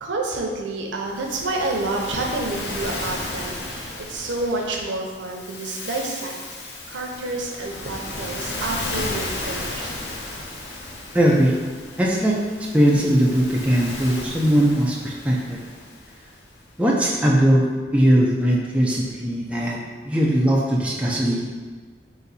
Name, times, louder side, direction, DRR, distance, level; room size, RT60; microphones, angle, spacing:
voice 1, 0.0-6.3 6.6-9.9, right 2 dB, 85° right, 0 dB, 0.7 m, -29 dB
Waves surf, 1.0-16.5, left 2 dB, 75° left, 0.7 m, -34 dB
voice 2, 11.1-11.5 12.0-12.4 12.7-15.6 16.8-17.6 17.9-19.8 20.1-21.5, equal, 5° right, -4 dB, 0.4 m, -19 dB
4.0 x 2.6 x 4.0 m, 1.4 s
head